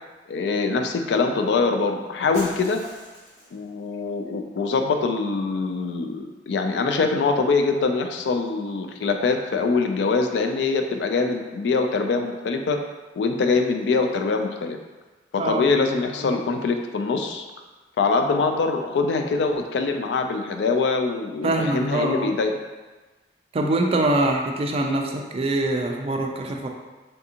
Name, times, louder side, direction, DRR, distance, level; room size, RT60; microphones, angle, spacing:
voice 1, 0.3-2.8 3.5-12.8 13.2-14.8 15.3-17.5 18.0-22.6, left 4 dB, 80° left, 5 dB, 0.3 m, -23 dB
Shatter, 2.3-3.7, left 1 dB, 40° left, 0.8 m, -42 dB
voice 2, 15.4-15.7 16.2-16.4 21.4-22.3 23.5-26.7, right 2 dB, 35° right, 2 dB, 0.3 m, -24 dB
3.4 x 2.5 x 2.8 m, 1.2 s
head